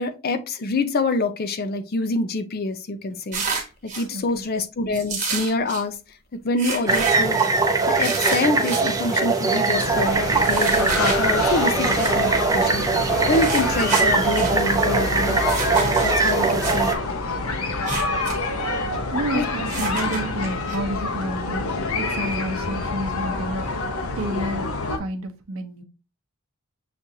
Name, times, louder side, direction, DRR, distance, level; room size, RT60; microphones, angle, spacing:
voice 1, 0.0-3.4 3.9-5.9 6.4-7.4 7.9-12.8 13.3-16.9 19.3-19.5, left 2 dB, 45° left, 0.5 m, -26 dB
sound 1, 3.3-4.1 4.9-5.8 6.6-7.5 8.0-8.8 10.4-11.2 12.0-12.1 13.2-14.6 15.4-16.8 17.7-18.4 18.6-18.7 19.7-20.8, right 5 dB, 35° right, 1.2 m, -30 dB
voice 2, 4.1-4.5 19.1-21.7 21.9-23.9 24.2-24.7 25.0-25.8, right 1 dB, 75° right, 0.8 m, -30 dB
sound 2, 6.9-16.9, right 3 dB, 15° right, 0.5 m, -21 dB
sound 3, 9.7-25.0, left 3 dB, 85° left, 0.8 m, -27 dB
6.8 x 2.5 x 2.7 m
head